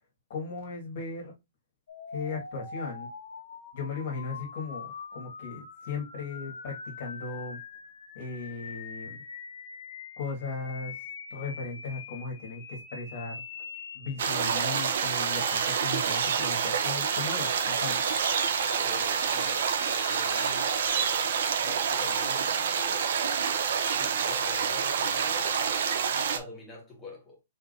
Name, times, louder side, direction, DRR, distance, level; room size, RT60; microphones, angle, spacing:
voice 1, 0.3-1.3 2.1-3.1 3.7-7.6 8.2-9.2 10.2-11.0 11.3-13.3 13.9-18.0, left 4 dB, 50° left, 1.9 m, -37 dB
sound 1, 1.9-20.9, left 5 dB, 80° left, 1.3 m, -43 dB
sound 2, 14.2-26.4, right 7 dB, 60° right, 0.7 m, -27 dB
voice 2, 18.5-19.7 20.1-20.8 21.6-23.1 23.9-25.6 26.3-27.4, left 2 dB, 5° left, 1.8 m, -46 dB
4.4 x 3.7 x 2.7 m
hypercardioid pair, 165°, 0 cm